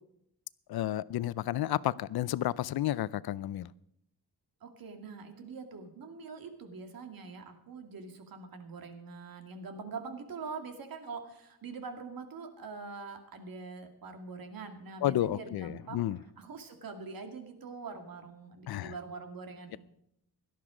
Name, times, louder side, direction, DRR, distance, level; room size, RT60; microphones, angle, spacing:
voice 1, 0.7-3.7 15.0-16.2 18.7-18.9, left 13 dB, 75° left, 20 dB, 0.5 m, -31 dB
voice 2, 4.6-16.0 16.4-19.8, right 4 dB, 65° right, 6 dB, 2.3 m, -44 dB
17.0 x 12.0 x 5.0 m, 0.77 s
wide cardioid pair, 170°, 38 cm